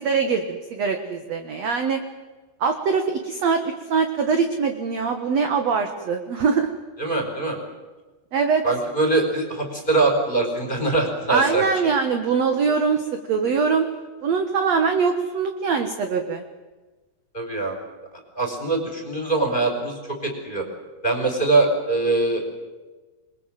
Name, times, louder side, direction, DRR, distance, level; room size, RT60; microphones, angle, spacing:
voice 1, 0.0-2.0 2.6-6.7 8.3-8.6 11.3-13.9 14.2-16.4, right 5 dB, 55° right, 6 dB, 2.1 m, -22 dB
voice 2, 7.0-7.6 8.6-11.6 17.3-17.8 18.3-20.6 21.0-22.4, right 3 dB, 10° left, 3 dB, 4.6 m, -22 dB
27.5 x 22.0 x 7.7 m, 1.2 s
omnidirectional pair, 4.7 m